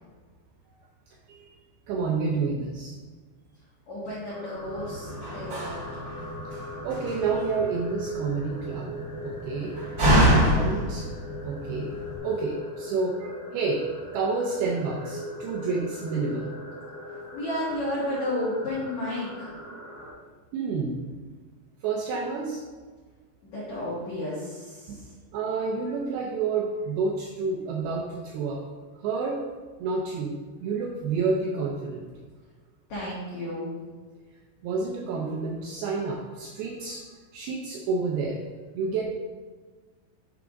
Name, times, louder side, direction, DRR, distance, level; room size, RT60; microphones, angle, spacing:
voice 1, 1.9-3.0 6.8-8.9 9.2-9.8 10.3-11.1 11.5-11.9 12.2-13.8 14.1-16.5 20.5-21.0 21.8-22.6 25.3-28.6 29.0-29.4 29.8-30.3 30.6-32.1 34.6-37.1 37.3-38.4 38.8-39.0, right 4 dB, 85° right, -1 dB, 2.2 m, -29 dB
voice 2, 3.9-6.0 17.3-19.5 23.4-25.0 32.9-33.8, left 1 dB, 85° left, -7 dB, 1.6 m, -32 dB
sound 1, 4.3-20.1, left 1 dB, 55° left, 1.0 m, -39 dB
Slam, 4.5-12.2, equal, 55° right, 1.3 m, -27 dB
6.9 x 3.5 x 5.0 m, 1.4 s
omnidirectional pair, 5.2 m